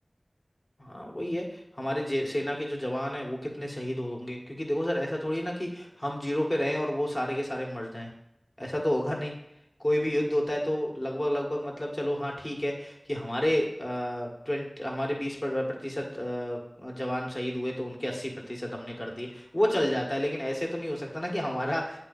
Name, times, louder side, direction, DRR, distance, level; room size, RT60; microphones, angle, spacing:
voice 1, 0.8-8.1 8.6-9.3 9.8-22.0, equal, 45° left, -1 dB, 1.6 m, -30 dB
8.5 x 3.0 x 5.4 m, 0.79 s
wide cardioid pair, 40°, 0 cm